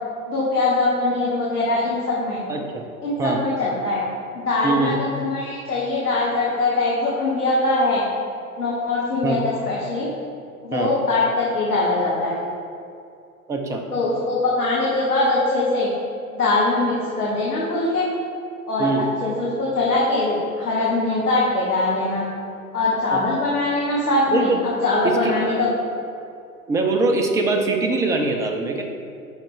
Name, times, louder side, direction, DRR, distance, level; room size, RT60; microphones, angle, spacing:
voice 1, 0.3-2.4 3.0-4.0 4.3-8.0 8.6-10.1 10.6-12.3 13.9-15.9 16.3-18.0 18.7-22.2 22.7-25.7, left 2 dB, 85° left, -7 dB, 1.5 m, -22 dB
voice 2, 2.5-2.8 3.2-3.4 4.6-5.0 9.2-9.4 10.7-10.9 13.5-13.8 18.8-19.1 23.1-23.2 24.3-24.6 25.0-25.3 26.7-28.8, right 3 dB, 10° right, 3 dB, 0.4 m, -22 dB
8.8 x 5.6 x 3.7 m, 2.5 s
figure-of-eight pair, 90°, 44 cm